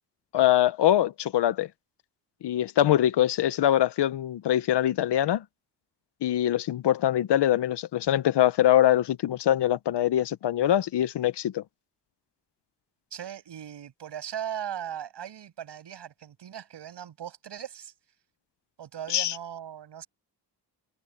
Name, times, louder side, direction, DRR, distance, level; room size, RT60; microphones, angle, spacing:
voice 1, 0.3-1.7 2.4-5.4 6.2-11.6 19.1-19.3, left 12 dB, 75° left, 0.9 m, -23 dB
voice 2, 13.1-17.9 18.8-20.1, right 10 dB, 85° right, 7.7 m, -38 dB
wide cardioid pair, 165°, 41 cm